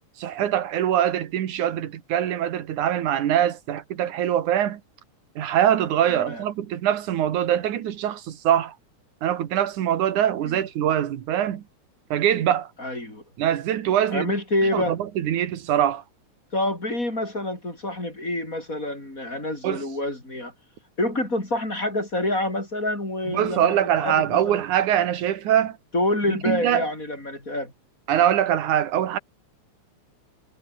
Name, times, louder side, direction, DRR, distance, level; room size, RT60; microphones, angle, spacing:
voice 1, 0.2-4.8 5.4-8.7 9.2-11.6 12.1-12.7 13.4-14.4 14.7-16.0 19.6-19.8 23.3-25.8 26.5-26.8 28.1-29.2, right 10 dB, 85° right, 3.1 m, -23 dB
voice 2, 6.1-6.4 10.4-10.6 12.8-13.2 14.1-15.0 16.5-20.5 21.0-24.6 25.9-27.7, left 1 dB, 25° left, 7.7 m, -27 dB
omnidirectional pair, 3.4 m